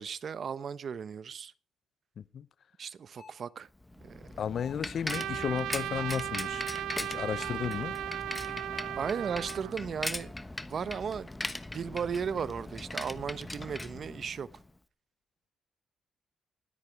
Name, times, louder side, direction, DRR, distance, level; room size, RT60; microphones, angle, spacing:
voice 1, 0.0-1.5 2.8-3.7 4.0-4.3 9.0-10.3 10.7-11.3 11.7-14.5, right 7 dB, 50° right, 0.8 m, -35 dB
voice 2, 2.2-2.5 4.4-6.6 7.0-7.9, left 8 dB, 55° left, 0.6 m, -34 dB
sound 1, 3.2-3.5 4.6-4.9 6.0-6.4 7.4-7.8, left 5 dB, 35° left, 2.9 m, -52 dB
Bicycle, 3.8-14.7, left 1 dB, 10° left, 1.2 m, -40 dB
Trumpet, 5.1-9.7, right 12 dB, 85° right, 0.5 m, -36 dB
19.5 x 8.4 x 4.8 m
cardioid pair, 90°, 0 cm